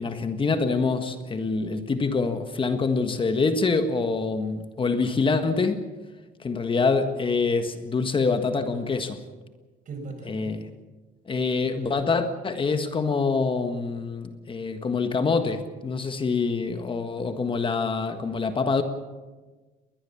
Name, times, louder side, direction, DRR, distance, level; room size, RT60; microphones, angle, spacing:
voice 1, 0.0-5.8 6.4-9.2 10.3-10.7 11.3-18.8, left 4 dB, 30° left, 8 dB, 1.6 m, -25 dB
voice 2, 9.9-10.6 11.3-12.2, right 3 dB, 50° right, 5 dB, 6.0 m, -41 dB
21.0 x 19.5 x 7.2 m, 1.3 s
cardioid pair, 110°, 17 cm